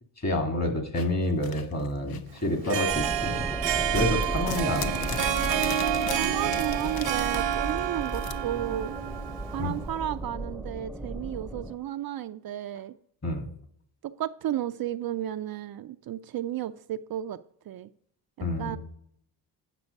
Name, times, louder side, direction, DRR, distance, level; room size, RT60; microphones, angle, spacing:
voice 1, 0.2-3.4 3.9-5.2 9.6-9.7 13.2-13.5 18.4-18.8, left 1 dB, 35° left, 5 dB, 2.1 m, -28 dB
sound 1, 1.0-3.0 3.3-8.3, left 7 dB, 55° left, 0.8 m, -38 dB
Harp, 2.5-9.9, right 11 dB, 75° right, 0.9 m, -29 dB
sound 2, 2.9-11.8, right 1 dB, ahead, 0.4 m, -35 dB
voice 2, 6.2-8.9 9.5-12.9 14.0-17.4 17.7-17.9 18.4-18.8, right 12 dB, 55° right, 10 dB, 0.5 m, -33 dB
9.3 x 6.1 x 5.2 m, 0.69 s
cardioid pair, 90°, 44 cm